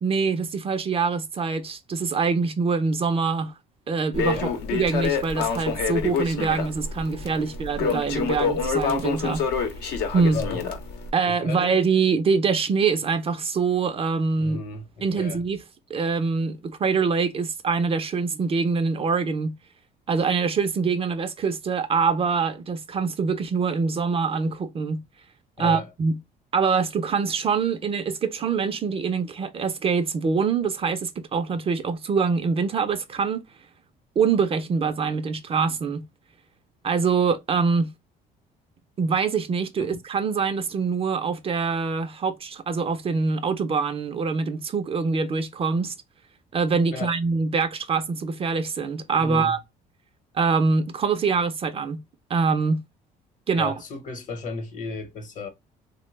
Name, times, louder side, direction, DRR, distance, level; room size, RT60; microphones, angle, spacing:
voice 1, 0.0-3.5 3.9-9.4 10.1-10.4 11.1-14.6 15.0-15.6 15.9-19.6 20.1-25.0 25.6-26.2 26.5-33.4 34.2-36.1 36.8-37.9 39.0-45.9 46.5-49.6 50.3-52.0 52.3-52.8 53.5-53.7, right 5 dB, 35° right, 0.4 m, -24 dB
Crackle, 4.1-11.1, left 6 dB, 85° left, 0.8 m, -27 dB
voice 2, 10.3-10.8 11.3-11.7 14.4-15.4 25.6-25.9 39.8-40.0 46.9-47.1 49.2-49.6 53.5-55.5, left 3 dB, 50° left, 0.9 m, -34 dB
3.3 x 2.1 x 3.1 m
cardioid pair, 110°, 17 cm